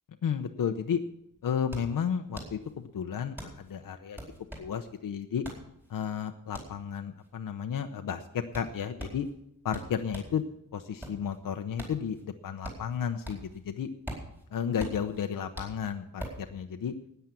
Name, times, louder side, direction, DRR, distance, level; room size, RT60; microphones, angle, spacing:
voice 1, 0.2-1.0 1.4-4.2 4.6-5.4 5.9-9.3 9.6-10.4 10.7-13.9 14.5-16.9, left 8 dB, 80° left, 6 dB, 0.9 m, -33 dB
sound 1, 1.1-10.4 10.8-13.6 13.9-16.5, equal, 5° right, 4.3 m, -43 dB
13.5 x 9.4 x 7.0 m, 0.75 s
wide cardioid pair, 150°, 33 cm